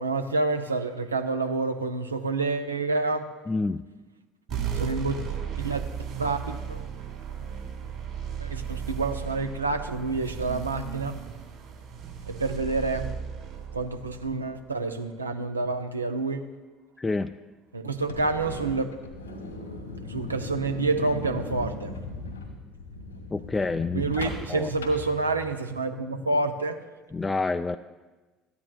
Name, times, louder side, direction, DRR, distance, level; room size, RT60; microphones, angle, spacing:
voice 1, 0.0-3.3 4.7-5.3 5.5-5.8 6.2-6.8 8.4-11.2 12.3-13.1 13.7-16.5 17.7-19.0 20.1-22.0 23.9-26.8, right 3 dB, 85° right, 7 dB, 0.5 m, -28 dB
voice 2, 3.5-3.8 17.0-17.3 23.3-24.1 24.5-24.7 27.1-27.8, left 3 dB, 20° left, 8 dB, 0.3 m, -27 dB
sound 1, 4.5-15.3, right 7 dB, 55° right, 2.2 m, -35 dB
sound 2, 17.9-25.7, left 3 dB, 85° left, 1.7 m, -38 dB
13.5 x 9.6 x 2.3 m, 1.2 s
figure-of-eight pair, 60°, 0 cm